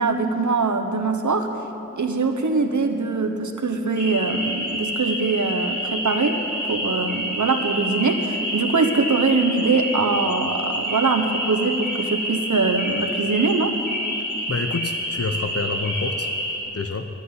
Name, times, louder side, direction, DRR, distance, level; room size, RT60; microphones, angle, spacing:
voice 1, 0.0-1.5 2.0-6.4 6.7-13.7, right 4 dB, 80° right, 5 dB, 1.2 m, -22 dB
sound 1, 3.9-16.6, equal, 90° left, 3.5 m, -28 dB
voice 2, 14.5-16.3 16.7-17.1, left 4 dB, 55° left, 6 dB, 0.9 m, -27 dB
12.0 x 11.5 x 9.7 m, 2.9 s
wide cardioid pair, 45°, 29 cm